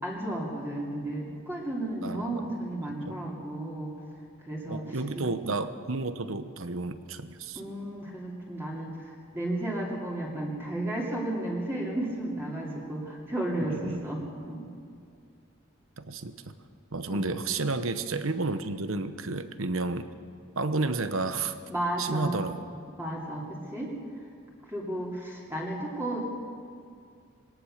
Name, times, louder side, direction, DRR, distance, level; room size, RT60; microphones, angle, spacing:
voice 1, 0.0-3.9 4.4-5.2 7.5-14.7 17.1-17.2 21.7-22.5 23.0-23.9 24.7-26.2, right 1 dB, 10° right, -4 dB, 2.8 m, -33 dB
voice 2, 2.0-2.4 3.1-3.2 4.7-7.6 13.7-14.0 16.0-16.5 16.9-20.1 20.6-21.6 22.0-22.7, right 3 dB, 70° right, 11 dB, 1.0 m, -31 dB
22.0 x 18.0 x 6.6 m, 2.4 s
head